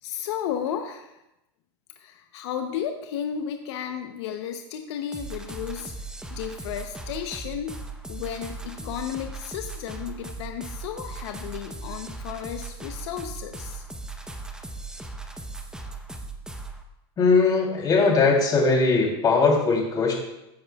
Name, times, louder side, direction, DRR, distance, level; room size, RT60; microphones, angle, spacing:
voice 1, 0.0-1.2 2.0-7.7 8.1-13.8, left 9 dB, 80° left, 6 dB, 0.8 m, -33 dB
sound 1, 5.1-16.8, right 3 dB, 5° right, 0.8 m, -38 dB
voice 2, 17.2-20.1, left 4 dB, 30° left, -1 dB, 3.1 m, -20 dB
15.5 x 8.7 x 2.3 m, 0.90 s
supercardioid pair, 135°, 14 cm